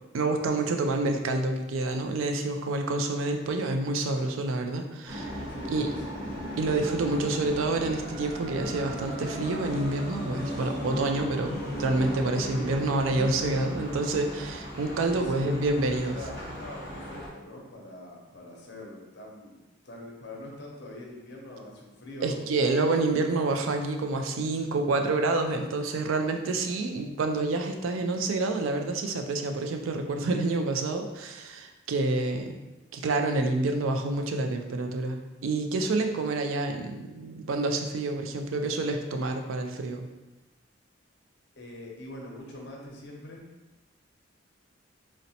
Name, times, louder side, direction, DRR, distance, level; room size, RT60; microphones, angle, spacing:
voice 1, 0.1-5.3 5.7-5.9 6.6-16.2 22.2-32.6 32.9-40.1, right 2 dB, 80° right, 5 dB, 0.4 m, -28 dB
sound 1, 5.1-17.3, equal, 40° right, 1.1 m, -36 dB
voice 2, 5.5-6.2 15.0-15.6 15.9-22.4 41.6-43.5, left 1 dB, 55° left, -1 dB, 0.6 m, -43 dB
3.9 x 2.1 x 2.7 m, 1.1 s
head